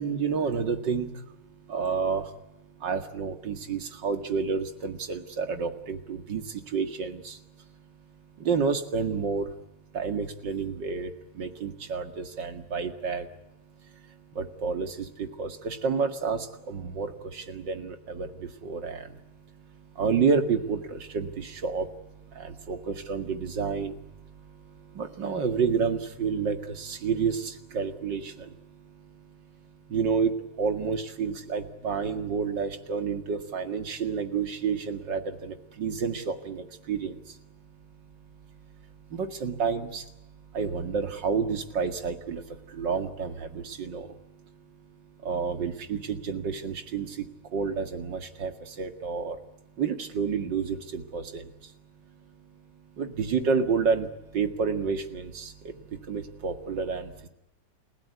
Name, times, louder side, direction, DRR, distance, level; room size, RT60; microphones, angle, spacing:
voice 1, 0.0-9.6 9.9-49.4 49.8-51.7 52.0-57.3, right 5 dB, 80° right, 8 dB, 2.7 m, -31 dB
29.5 x 16.0 x 9.5 m, 0.87 s
omnidirectional pair, 1.9 m